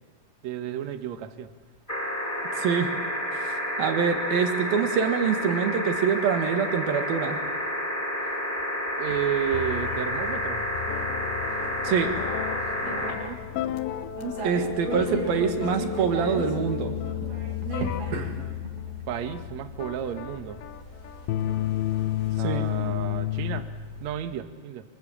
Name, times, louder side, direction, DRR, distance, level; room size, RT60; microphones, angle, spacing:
voice 1, 0.4-1.5 9.0-10.7 12.8-13.2 19.1-20.6 22.4-23.7 24.0-24.8, right 10 dB, 90° right, 8 dB, 1.5 m, -32 dB
sound 1, 1.9-13.1 14.6-14.7, equal, 10° left, 5.0 m, -30 dB
voice 2, 2.6-2.9 3.5-7.4 11.8-12.1 14.4-16.9 22.4-22.7, right 6 dB, 65° right, 6 dB, 3.3 m, -25 dB
sound 2, 9.1-24.1, right 4 dB, 45° right, 2.8 m, -39 dB
sound 3, 9.5-23.6, left 11 dB, 85° left, 3.2 m, -32 dB
24.0 x 24.0 x 7.4 m, 1.4 s
omnidirectional pair, 4.9 m